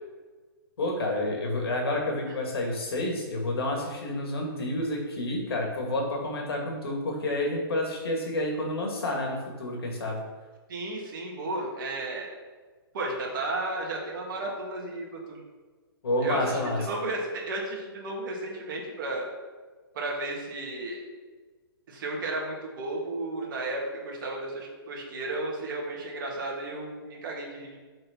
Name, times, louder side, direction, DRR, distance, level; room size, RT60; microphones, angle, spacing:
voice 1, 0.8-10.2 16.0-16.8, left 1 dB, 80° left, 0 dB, 2.3 m, -29 dB
voice 2, 10.7-12.3 12.9-15.4 16.2-19.3 19.9-21.0 21.9-27.8, right 2 dB, 60° right, -1 dB, 2.2 m, -33 dB
6.4 x 4.4 x 6.0 m, 1.4 s
hypercardioid pair, 145°, 13 cm